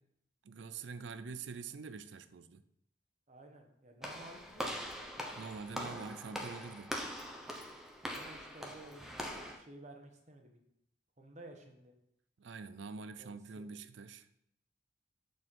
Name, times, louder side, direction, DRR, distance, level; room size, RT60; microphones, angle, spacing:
voice 1, 0.4-2.6 5.4-7.0 12.4-14.3, right 4 dB, 70° right, 0.5 m, -45 dB
voice 2, 3.3-5.0 5.8-6.2 8.1-10.6 11.2-11.9 13.2-13.8, right 1 dB, 40° right, 1.1 m, -54 dB
Walk footsteps / Slam, 4.0-9.6, equal, ahead, 0.8 m, -42 dB
6.4 x 6.3 x 4.5 m
head